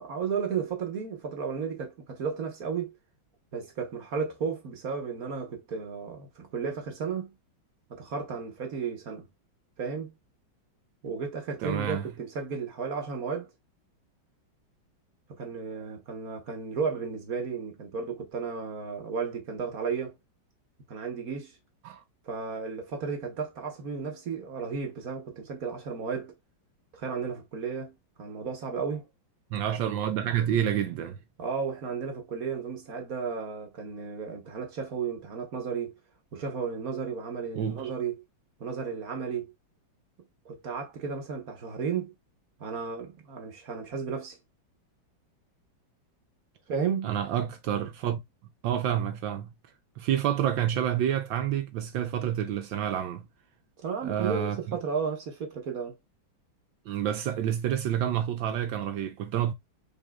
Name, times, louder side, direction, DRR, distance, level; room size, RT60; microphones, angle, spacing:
voice 1, 0.0-2.9 3.5-7.3 7.9-9.3 9.8-10.1 11.0-13.5 15.3-20.2 20.9-21.5 22.2-26.3 26.9-29.0 29.9-30.0 31.4-36.0 36.3-38.2 38.6-39.5 40.4-42.1 42.6-44.4 46.7-47.2 53.8-55.9, right 5 dB, 50° right, 1.4 m, -33 dB
voice 2, 11.6-12.1 21.8-22.0 29.5-31.2 37.6-37.9 47.0-48.2 48.6-49.5 50.0-53.2 54.0-54.8 56.9-59.5, right 10 dB, 75° right, 1.3 m, -28 dB
5.3 x 3.8 x 2.3 m
omnidirectional pair, 2.2 m